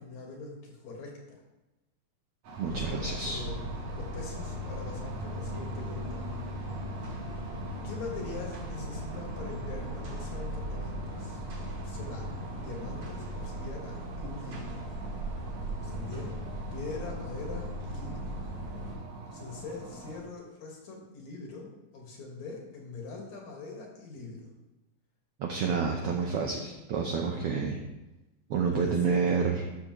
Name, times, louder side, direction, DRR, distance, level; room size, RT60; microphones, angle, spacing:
voice 1, 0.0-1.4 2.6-6.3 7.8-11.4 11.7-14.8 15.8-16.3 16.7-18.4 19.3-24.5 28.7-29.5, left 3 dB, 65° left, 0 dB, 2.7 m, -42 dB
sound 1, 2.4-20.2, right 2 dB, 70° right, 2.7 m, -45 dB
voice 2, 2.6-3.4 25.4-27.8 28.5-29.6, right 5 dB, 90° right, 1 dB, 1.3 m, -29 dB
sound 2, 2.7-19.0, equal, 50° right, 3.6 m, -38 dB
12.0 x 6.7 x 3.0 m, 1.0 s
omnidirectional pair, 3.6 m